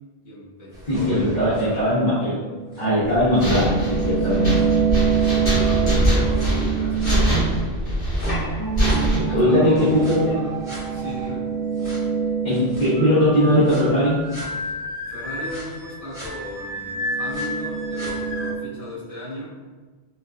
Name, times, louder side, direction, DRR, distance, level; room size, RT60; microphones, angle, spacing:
voice 1, 0.2-1.9 4.2-4.5 5.1-7.4 9.1-10.6 10.9-11.5 15.1-19.5, left 1 dB, 30° left, -10 dB, 1.3 m, -37 dB
sound 1, 0.7-7.6 8.2-13.8 14.3-14.4 15.5-15.6 16.1-16.3 16.8-18.5, right 7 dB, 5° right, 1.1 m, -26 dB
voice 2, 0.9-2.4 2.8-4.7 9.1-10.4 12.4-14.2, equal, 45° left, -10 dB, 1.0 m, -20 dB
sound 2, 3.0-9.2, equal, 75° left, 1.8 m, -23 dB
sound 3, 8.6-11.5 12.9-18.5, equal, 60° right, 1.0 m, -33 dB
4.0 x 2.4 x 2.3 m, 1.4 s
omnidirectional pair, 1.1 m